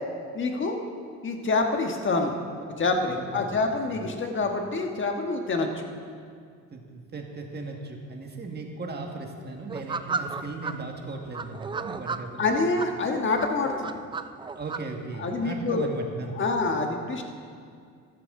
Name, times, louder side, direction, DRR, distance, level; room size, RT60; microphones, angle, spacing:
voice 1, 0.3-0.8 1.2-2.3 2.8-5.8 12.4-13.9 15.2-15.9 16.3-17.2, left 3 dB, 35° left, 3 dB, 1.4 m, -26 dB
voice 2, 3.1-3.5 3.9-4.1 6.7-12.5 14.5-16.5, right 3 dB, 30° right, 2 dB, 1.6 m, -37 dB
sound 1, 9.7-10.7 11.3-12.9 13.4-14.8, right 4 dB, 15° right, 0.3 m, -33 dB
14.0 x 12.0 x 3.8 m, 2.2 s
cardioid pair, 115°, 32 cm